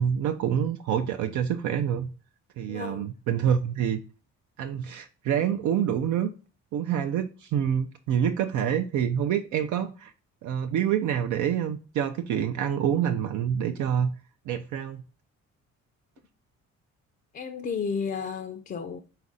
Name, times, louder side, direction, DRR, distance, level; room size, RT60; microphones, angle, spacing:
voice 1, 0.0-2.1 2.6-4.0 4.6-6.3 6.7-10.1 10.4-14.1 14.5-15.0, right 9 dB, 75° right, 0.5 m, -27 dB
voice 2, 2.7-3.1 17.3-19.0, left 6 dB, 35° left, 0.4 m, -32 dB
4.1 x 2.5 x 3.8 m
cardioid pair, 90°, 30 cm